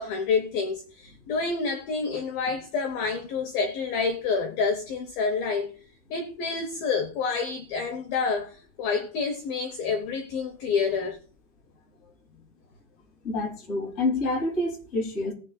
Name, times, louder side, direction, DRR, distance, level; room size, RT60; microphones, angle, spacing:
voice 1, 0.0-5.7 6.1-11.2, left 5 dB, 80° left, 2.1 m, -28 dB
voice 2, 13.2-15.3, left 2 dB, 30° left, 1.3 m, -27 dB
19.5 x 6.6 x 2.2 m
omnidirectional pair, 5.5 m